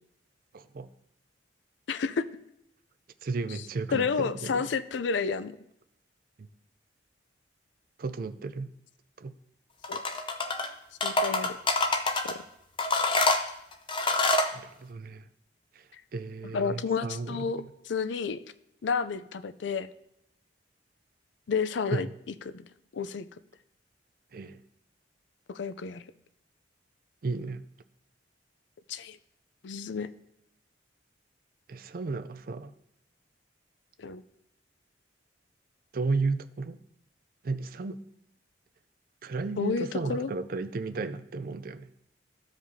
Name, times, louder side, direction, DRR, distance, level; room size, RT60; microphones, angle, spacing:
voice 1, 0.5-0.9 3.2-4.6 6.4-6.5 8.0-8.7 9.2-9.3 14.5-15.3 16.1-17.5 21.9-22.1 24.3-24.6 27.2-27.6 31.7-32.7 35.9-36.8 37.4-38.0 39.2-42.0, right 3 dB, 50° right, 12 dB, 0.4 m, -33 dB
voice 2, 1.9-2.3 3.5-3.6 3.9-5.5 9.9-10.0 11.0-11.6 12.2-12.4 15.9-16.0 16.4-18.4 18.8-19.9 21.5-22.1 22.5-22.6 22.9-23.3 25.5-26.0 28.9-29.2 29.6-30.1 34.0-34.2 39.6-40.3, left 5 dB, 70° left, 13 dB, 0.4 m, -30 dB
sound 1, 9.8-10.7 11.0-12.3 12.8-14.5, left 2 dB, 25° left, 0.6 m, -26 dB
14.5 x 5.0 x 2.7 m, 0.78 s
head